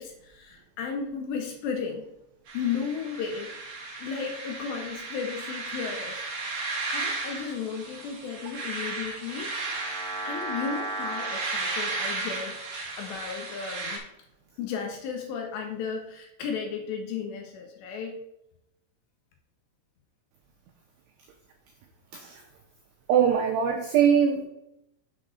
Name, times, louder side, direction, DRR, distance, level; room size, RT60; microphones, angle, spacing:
voice 1, 0.0-2.1 2.5-3.5 4.0-6.2 6.5-9.5 10.2-14.0 14.6-18.2, left 6 dB, 75° left, 3 dB, 2.8 m, -34 dB
sound 1, 2.5-14.0, right 3 dB, 55° right, 1.9 m, -34 dB
voice 2, 23.1-24.4, right 8 dB, 85° right, 3 dB, 2.3 m, -22 dB
7.5 x 4.1 x 6.3 m, 0.84 s
omnidirectional pair, 5.7 m